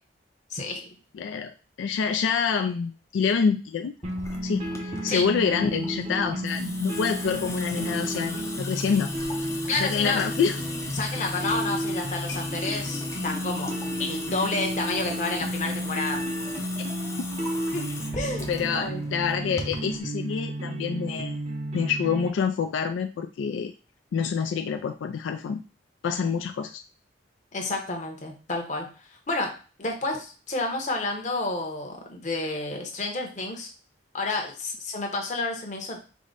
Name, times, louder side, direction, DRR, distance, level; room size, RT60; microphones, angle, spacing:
voice 1, 0.5-0.9 5.1-5.3 9.7-10.3 10.9-16.2 17.7-17.9 18.1-19.0 27.5-29.5 29.8-33.7 34.1-36.0, left 2 dB, 40° left, 2 dB, 0.9 m, -30 dB
voice 2, 1.1-3.9 4.4-9.1 9.8-10.6 16.8-16.9 18.5-21.4 21.7-23.7 24.1-25.6 26.0-26.8, left 6 dB, 80° left, 5 dB, 0.3 m, -27 dB
Water tap faucet / Sink (filling or washing) / Drip, 4.0-20.0, left 3 dB, 15° left, 0.5 m, -38 dB
sound 1, 4.0-22.3, equal, 35° right, 0.7 m, -32 dB
4.8 x 2.1 x 3.9 m, 0.35 s
head